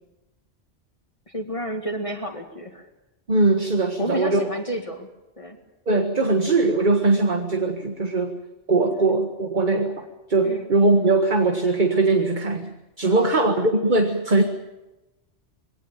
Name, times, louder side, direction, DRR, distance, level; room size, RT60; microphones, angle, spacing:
voice 1, 1.3-2.9 4.0-5.1 5.4-5.6 8.9-9.1 10.4-10.7 13.0-13.5, equal, 30° left, 4 dB, 2.0 m, -31 dB
voice 2, 3.3-4.4 5.9-8.4 8.7-14.4, right 3 dB, 45° right, 5 dB, 1.7 m, -21 dB
22.5 x 18.0 x 9.0 m, 1.0 s
omnidirectional pair, 1.1 m